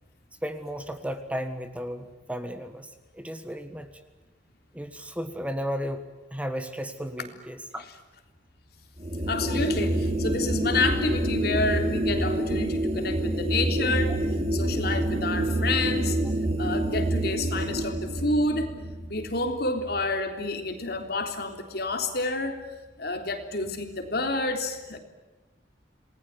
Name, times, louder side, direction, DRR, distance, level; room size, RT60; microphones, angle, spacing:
voice 1, 0.4-2.9 3.1-3.9 4.7-7.8, equal, 5° right, 8 dB, 1.5 m, -34 dB
sound 1, 9.0-20.3, right 1 dB, 35° right, 3.6 m, -27 dB
voice 2, 9.2-14.2 14.5-16.2 16.6-18.8 19.1-22.6 23.0-25.0, left 2 dB, 60° left, 5 dB, 3.6 m, -29 dB
28.5 x 20.0 x 9.4 m, 1.1 s
head